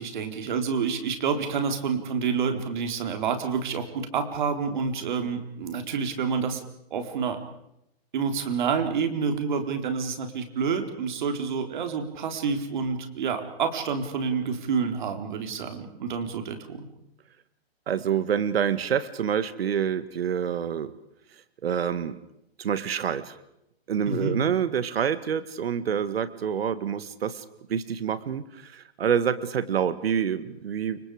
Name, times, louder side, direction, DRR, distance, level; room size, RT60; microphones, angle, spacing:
voice 1, 0.0-6.6 6.9-7.4 8.1-16.9 24.1-24.4, right 6 dB, 50° right, 6 dB, 4.1 m, -28 dB
voice 2, 17.9-20.9 21.6-22.2 22.6-23.4 23.9-27.4 27.7-31.0, right 8 dB, 70° right, 13 dB, 2.0 m, -27 dB
30.0 x 25.0 x 5.0 m, 0.80 s
hypercardioid pair, 165°, 31 cm